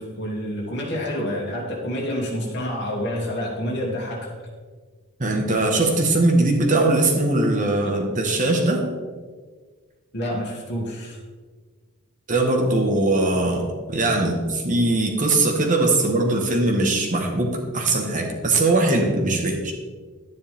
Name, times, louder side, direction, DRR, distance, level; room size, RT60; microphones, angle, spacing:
voice 1, 0.0-4.3 10.1-11.2, equal, 50° left, -3 dB, 2.8 m, -28 dB
voice 2, 5.2-8.8 12.3-19.7, right 2 dB, 35° right, 1 dB, 1.4 m, -21 dB
11.5 x 10.0 x 3.6 m, 1.5 s
head